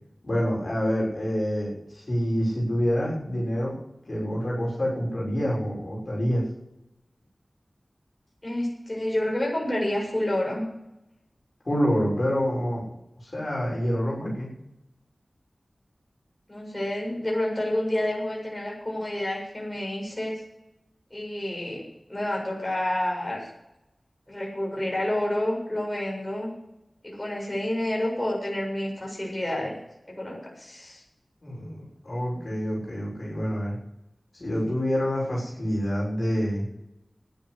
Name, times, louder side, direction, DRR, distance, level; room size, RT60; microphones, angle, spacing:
voice 1, 0.2-3.8 4.1-6.4 11.7-12.8 13.2-14.5 31.4-33.8 34.3-36.7, equal, 50° left, -4 dB, 6.7 m, -27 dB
voice 2, 8.4-10.7 16.5-20.4 21.1-23.5 24.3-26.5 27.0-29.7 30.1-31.0, left 1 dB, 20° left, -3 dB, 7.6 m, -29 dB
12.0 x 11.0 x 8.3 m, 0.86 s
wide cardioid pair, 60°, 0 cm